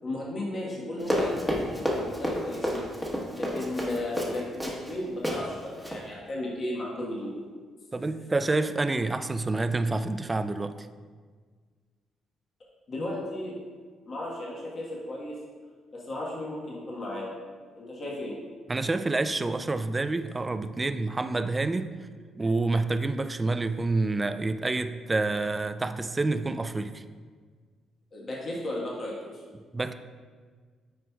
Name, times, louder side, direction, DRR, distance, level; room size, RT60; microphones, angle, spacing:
voice 1, 0.0-2.8 3.3-7.3 12.9-13.5 14.1-15.3 15.9-17.3 17.7-18.3 28.1-29.4, left 1 dB, 45° left, -4 dB, 1.3 m, -35 dB
Run, 1.0-4.9 5.2-5.4 5.8-6.0, equal, 5° left, 1.1 m, -30 dB
voice 2, 7.9-10.9 18.7-21.9 22.4-27.0 29.7-29.9, right 3 dB, 20° right, 11 dB, 0.3 m, -28 dB
9.2 x 4.5 x 2.3 m, 1.6 s
cardioid pair, 90°, 0 cm